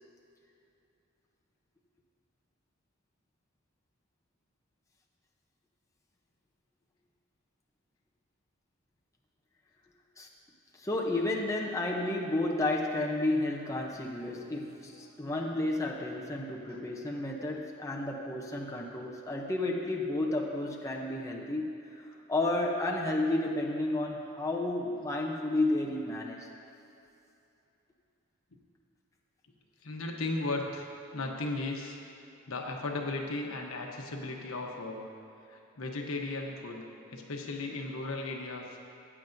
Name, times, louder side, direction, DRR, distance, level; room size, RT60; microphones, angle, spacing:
voice 1, 10.7-26.5, left 2 dB, 15° left, -1 dB, 0.7 m, -32 dB
voice 2, 16.7-17.2 29.8-32.0 32.5-35.1 35.5-38.6, left 2 dB, 80° left, 1 dB, 1.0 m, -36 dB
14.5 x 9.1 x 2.7 m, 2.8 s
head